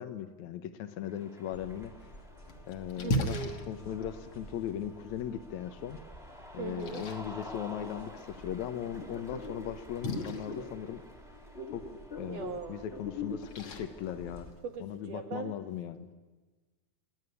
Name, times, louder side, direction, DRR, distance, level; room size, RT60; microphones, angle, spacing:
voice 1, 0.0-1.9 2.7-6.0 6.5-11.0 11.7-11.8 12.2-14.5 14.8-16.1, left 9 dB, 85° left, 11 dB, 1.6 m, -38 dB
Cheering, 0.9-14.4, left 1 dB, ahead, 0.8 m, -52 dB
sound 1, 1.5-14.5, left 2 dB, 35° left, 1.0 m, -46 dB
Splash splatter, 2.0-15.0, equal, 55° left, 1.6 m, -41 dB
voice 2, 3.0-3.7 6.6-7.1 12.3-12.9 14.6-15.5, right 6 dB, 75° right, 4 dB, 1.9 m, -40 dB
25.5 x 11.0 x 9.7 m, 1.3 s
omnidirectional pair, 4.7 m